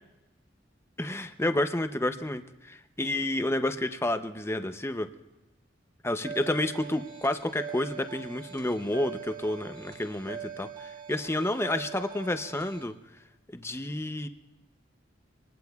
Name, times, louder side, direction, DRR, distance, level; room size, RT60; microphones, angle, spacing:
voice 1, 1.0-5.1 6.0-12.9 13.5-14.3, left 1 dB, 15° left, 8 dB, 0.6 m, -30 dB
sound 1, 6.2-12.8, right 7 dB, 25° right, 1.8 m, -42 dB
26.0 x 19.5 x 2.3 m, 1.0 s
head